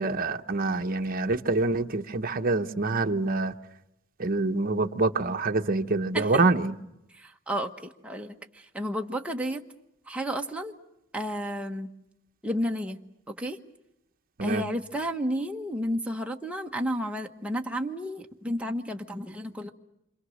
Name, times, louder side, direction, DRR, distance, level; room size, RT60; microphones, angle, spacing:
voice 1, 0.0-3.5 4.2-6.7 14.4-14.6, right 3 dB, 45° right, 1.0 m, -26 dB
voice 2, 7.1-7.7 8.0-9.6 10.1-10.7 11.1-11.9 12.4-13.0 13.3-13.6 14.4-19.7, equal, 5° right, 1.3 m, -32 dB
28.0 x 26.0 x 6.5 m
head